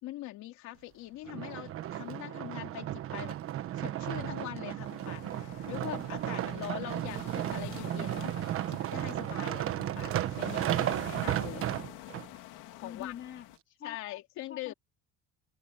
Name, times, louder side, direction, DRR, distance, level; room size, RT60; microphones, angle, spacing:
voice 1, 0.0-3.4 3.7-8.4 8.7-11.7 12.7-13.1 13.8-14.7, left 16 dB, 65° left, 3.4 m, -43 dB
sound 1, 1.3-12.3 12.9-13.0, right 12 dB, 45° right, 1.2 m, -34 dB
sound 2, 4.8-13.6, left 18 dB, 85° left, 2.7 m, -48 dB
voice 2, 6.6-6.9 12.8-14.0 14.5-14.7, left 10 dB, 40° left, 3.3 m, -45 dB
cardioid pair, 160°, 31 cm